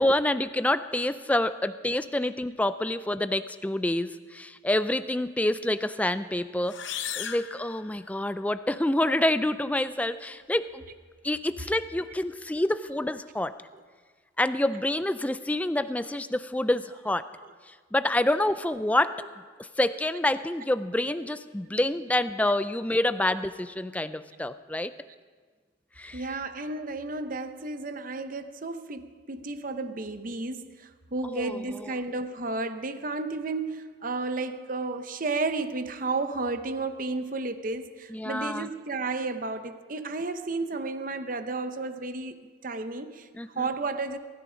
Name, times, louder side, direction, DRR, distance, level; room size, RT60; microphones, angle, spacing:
voice 1, 0.0-10.8 11.2-13.6 14.4-17.3 17.7-19.2 19.6-24.9 26.0-26.2 31.3-31.9 38.1-38.7 43.3-43.6, left 1 dB, 5° left, 12 dB, 0.4 m, -27 dB
sound 1, 6.6-8.5, left 9 dB, 65° left, 0.8 m, -37 dB
voice 2, 26.1-44.2, right 3 dB, 45° right, 10 dB, 0.8 m, -32 dB
20.0 x 13.5 x 5.0 m, 1.6 s
head